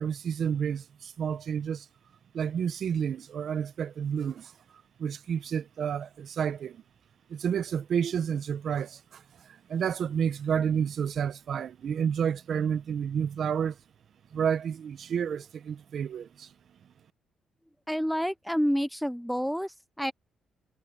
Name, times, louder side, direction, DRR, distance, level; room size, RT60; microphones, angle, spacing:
voice 1, 0.0-1.9 2.3-4.5 5.0-6.8 7.3-13.8 14.3-16.5, right 7 dB, 60° right, 1.1 m, -30 dB
voice 2, 17.9-20.1, equal, ahead, 0.5 m, -29 dB
cardioid pair, 90°, 0 cm